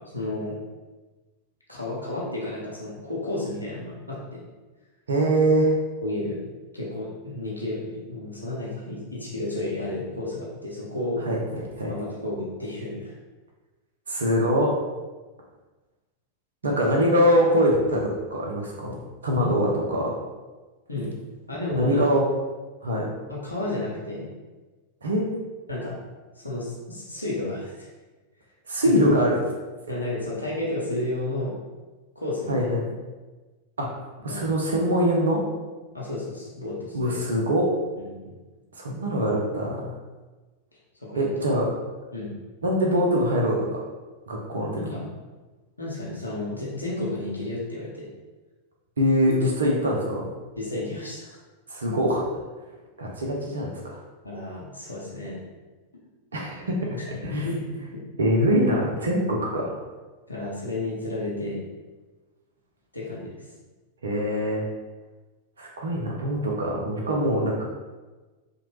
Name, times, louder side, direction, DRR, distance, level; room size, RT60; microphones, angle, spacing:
voice 1, 0.1-0.5 1.7-4.4 6.0-6.4 6.7-11.2 11.9-13.2 16.6-16.9 19.3-19.5 20.9-21.1 21.5-22.0 23.3-24.3 25.7-26.0 26.4-27.9 28.8-28.9 29.9-31.6 32.2-32.7 34.3-34.4 35.9-37.2 38.0-38.4 40.9-41.3 42.1-42.3 44.7-45.0 45.8-48.1 50.6-51.4 54.2-55.4 57.1-58.0 60.3-61.6 62.9-63.5, left 2 dB, 85° left, -5 dB, 0.6 m, -32 dB
voice 2, 5.1-5.7 11.3-11.4 11.8-11.9 14.1-14.7 16.6-18.9 19.2-20.1 21.7-22.2 22.8-23.1 25.0-25.3 28.7-29.4 32.5-32.9 33.8-35.4 36.9-37.7 38.8-39.9 41.2-41.7 42.6-43.8 44.3-44.8 49.0-50.3 51.7-52.4 53.0-54.0 56.3-56.8 57.2-57.3 58.2-59.8 64.0-64.6 65.6-67.6, equal, 70° right, -1 dB, 0.5 m, -23 dB
2.9 x 2.1 x 3.1 m, 1.2 s
figure-of-eight pair, 90°, 0 cm